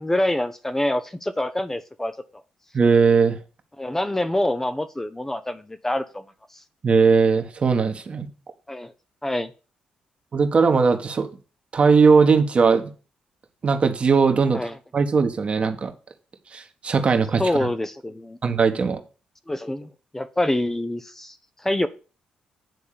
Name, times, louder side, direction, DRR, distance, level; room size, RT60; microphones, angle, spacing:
voice 1, 0.0-2.1 3.8-6.2 6.5-6.6 8.7-8.9 9.2-9.5 14.5-14.8 17.4-18.4 19.5-21.9, left 1 dB, 15° left, 10 dB, 0.8 m, -26 dB
voice 2, 2.7-3.4 6.8-8.3 10.3-11.3 11.7-12.9 13.6-14.6 14.9-15.9 16.5-17.4 18.4-19.0, right 5 dB, 45° right, 6 dB, 1.4 m, -19 dB
9.3 x 3.6 x 6.8 m, 0.35 s
supercardioid pair, 60°, 3 cm